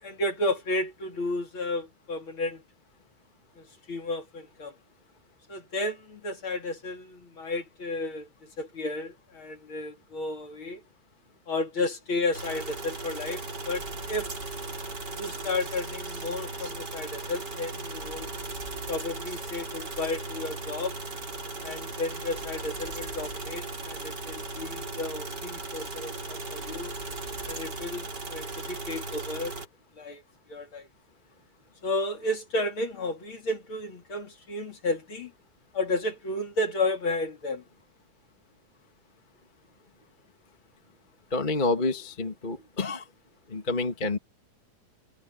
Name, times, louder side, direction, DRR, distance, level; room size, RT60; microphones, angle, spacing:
voice 1, 0.0-2.6 3.6-4.8 5.5-10.8 11.5-14.3 15.1-18.3 18.9-21.0 21.6-27.0 27.5-29.5 30.0-30.2 30.5-30.9 31.8-35.3 35.7-37.6, left 2 dB, 40° left, 3.4 m, -32 dB
sound 1, 12.3-29.7, right 3 dB, 35° right, 4.4 m, -37 dB
voice 2, 41.3-43.0 43.5-44.2, left 3 dB, 20° left, 1.6 m, -28 dB
omnidirectional pair, 3.5 m